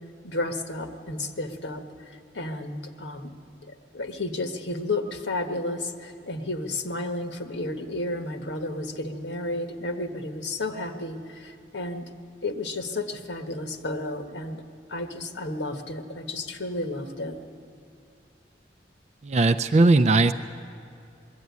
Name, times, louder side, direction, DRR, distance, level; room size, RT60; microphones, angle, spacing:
voice 1, 0.2-3.4 3.6-12.1 12.4-14.6 14.9-17.4, left 2 dB, 80° left, 6 dB, 1.4 m, -32 dB
voice 2, 19.2-20.3, right 2 dB, 40° right, 10 dB, 0.4 m, -18 dB
21.0 x 13.5 x 9.5 m, 2.5 s
head